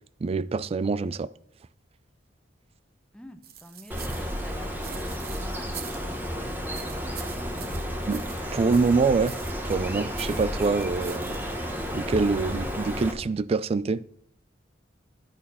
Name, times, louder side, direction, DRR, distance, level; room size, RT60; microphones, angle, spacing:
voice 1, 0.2-1.3 8.1-8.2 8.5-9.4 9.6-11.4 11.9-14.0, right 4 dB, 35° right, 0.3 m, -25 dB
voice 2, 3.1-7.2 7.7-7.8, equal, 5° left, 0.7 m, -46 dB
sound 1, 3.4-6.3 6.7-8.5 8.7-11.7, right 10 dB, 55° right, 0.8 m, -44 dB
Bird, 3.9-13.1, equal, 10° right, 1.1 m, -32 dB
11.5 x 4.4 x 5.5 m
head